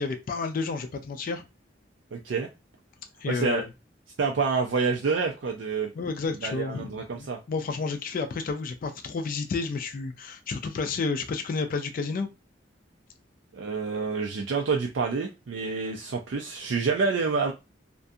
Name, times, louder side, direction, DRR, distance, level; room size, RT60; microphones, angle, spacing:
voice 1, 0.0-1.4 3.2-3.7 5.9-12.3, left 4 dB, 50° left, 0.3 m, -31 dB
voice 2, 2.1-2.5 3.3-3.6 4.2-5.9 6.4-7.4 13.5-17.5, right 4 dB, 75° right, 0.4 m, -27 dB
2.5 x 2.2 x 2.6 m
head